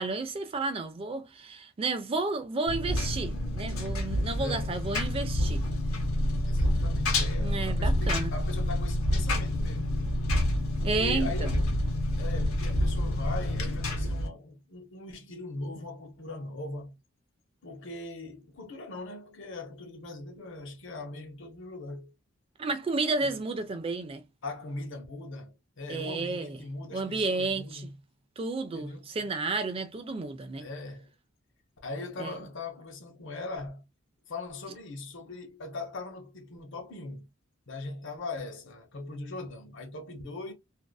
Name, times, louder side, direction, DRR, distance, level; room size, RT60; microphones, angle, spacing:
voice 1, 0.0-5.6 7.4-8.3 10.8-11.5 22.6-24.2 25.9-26.6 26.9-27.9 28.4-30.7 32.2-32.4, right 3 dB, 25° right, 0.3 m, -32 dB
Engine, 2.7-14.3, left 1 dB, 90° left, 1.0 m, -28 dB
voice 2, 4.3-4.7 6.4-10.0 10.8-11.7 12.2-16.9 17.6-22.1 23.2-23.3 24.4-27.9 28.7-29.1 30.6-31.1 31.8-33.8 34.3-37.3 37.7-40.5, left 3 dB, 60° left, 0.8 m, -40 dB
2.5 x 2.4 x 2.2 m
head